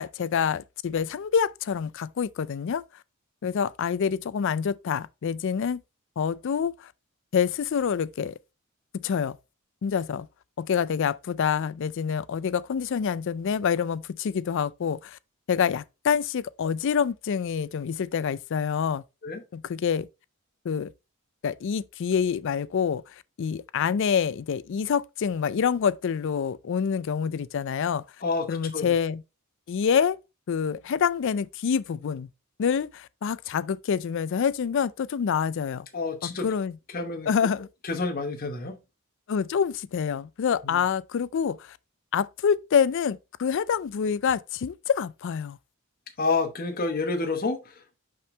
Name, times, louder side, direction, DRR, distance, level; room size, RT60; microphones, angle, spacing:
voice 1, 0.0-2.8 3.4-5.8 6.2-6.9 7.3-8.4 8.9-9.4 9.8-10.3 10.6-15.2 15.5-19.0 19.5-20.1 20.6-20.9 21.4-23.0 23.4-28.0 28.5-29.2 29.7-30.2 30.5-32.3 32.6-35.9 36.2-36.8 37.3-37.7 39.3-41.8 42.1-45.6, left 7 dB, 55° left, 0.3 m, -26 dB
voice 2, 35.9-36.5 36.9-37.3 37.8-38.8 40.6-40.9 46.2-47.9, left 3 dB, 40° left, 1.0 m, -29 dB
5.6 x 5.2 x 3.2 m
head